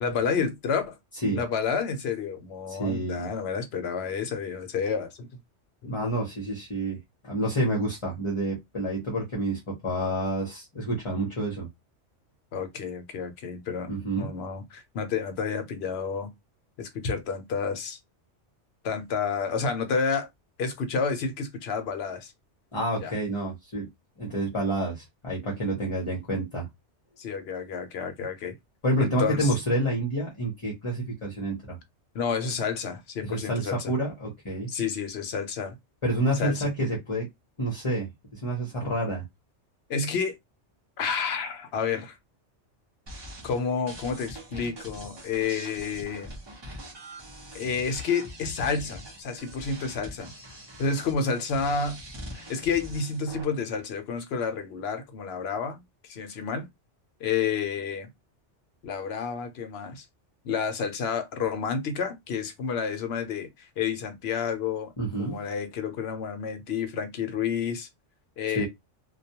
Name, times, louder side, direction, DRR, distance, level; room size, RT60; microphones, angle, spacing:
voice 1, 0.0-1.0 1.3-5.3 5.8-6.0 12.5-13.9 14.2-16.3 16.8-18.0 18.8-20.3 20.6-22.3 23.0-23.1 27.2-28.5 29.0-29.6 32.1-33.9 34.7-35.8 36.3-36.7 39.9-40.4 41.0-42.2 43.4-46.3 47.5-50.3 50.8-52.0 52.3-56.7 57.2-58.1 58.8-60.0 60.4-64.9 65.2-67.9 68.4-68.7, left 5 dB, 65° left, 0.8 m, -30 dB
voice 2, 2.7-3.3 5.8-7.0 7.2-11.7 13.9-14.3 22.7-23.9 24.2-26.7 28.8-31.8 33.2-34.7 36.0-37.3 37.6-39.2 65.0-65.4 68.5-68.7, right 1 dB, 30° left, 0.7 m, -28 dB
sound 1, 43.1-53.4, equal, 25° right, 0.7 m, -43 dB
2.2 x 2.2 x 2.8 m
omnidirectional pair, 1.2 m